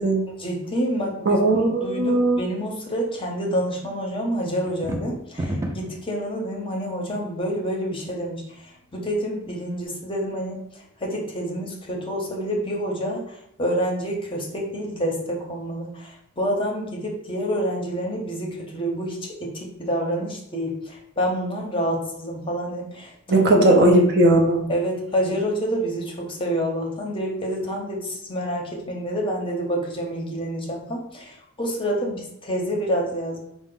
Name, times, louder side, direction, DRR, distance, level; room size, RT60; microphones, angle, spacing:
voice 1, 0.4-1.4 1.8-10.6 11.0-23.7 24.7-33.4, equal, 25° left, 0 dB, 0.7 m, -28 dB
voice 2, 1.3-2.4 23.3-24.7, right 1 dB, 50° right, 2 dB, 0.6 m, -17 dB
sound 1, 4.7-6.0, right 1 dB, 15° right, 0.4 m, -29 dB
4.7 x 2.0 x 3.7 m, 0.79 s
head